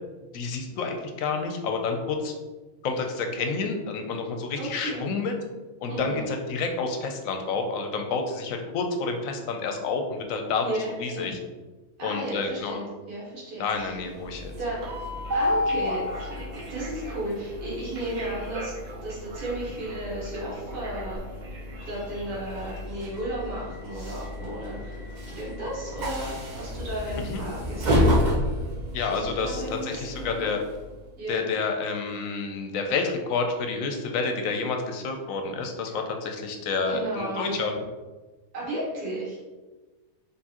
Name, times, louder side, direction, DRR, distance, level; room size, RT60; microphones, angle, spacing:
voice 1, 0.3-2.3 2.8-5.3 5.8-10.6 11.0-11.4 12.0-12.8 13.6-14.5 27.2-27.4 28.9-30.6 31.3-37.7, left 4 dB, 70° left, 4 dB, 0.9 m, -29 dB
voice 2, 4.6-5.0 5.9-6.3 10.6-11.2 12.0-14.0 14.6-14.8 15.3-18.7 19.0-21.2 21.9-25.0 25.4-28.1 28.4-28.6 29.1-30.5 31.2-31.5 35.9-36.0 36.9-37.7 38.5-39.4, right 1 dB, 85° right, -6 dB, 1.8 m, -34 dB
Train, 13.8-31.1, left 1 dB, 45° right, 0.6 m, -31 dB
4.6 x 3.3 x 2.9 m, 1.2 s
omnidirectional pair, 1.6 m